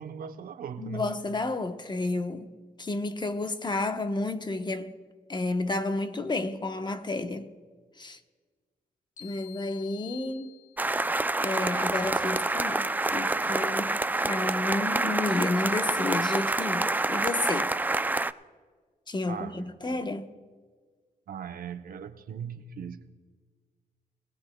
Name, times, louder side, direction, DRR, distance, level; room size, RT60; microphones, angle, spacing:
voice 1, 0.0-1.1 19.3-20.0 21.3-23.1, right 7 dB, 75° right, 0.7 m, -39 dB
voice 2, 0.8-2.5 2.8-4.9 5.3-7.5 8.0-8.2 9.2-10.5 11.4-17.7 19.1-20.3, left 2 dB, 30° left, 0.9 m, -31 dB
sound 1, 9.2-11.1, left 14 dB, 55° left, 1.4 m, -48 dB
sound 2, 10.8-18.3, right 2 dB, 10° right, 0.3 m, -27 dB
sound 3, 11.9-17.1, left 1 dB, 85° left, 3.1 m, -50 dB
21.0 x 15.5 x 2.2 m
cardioid pair, 70°, 15 cm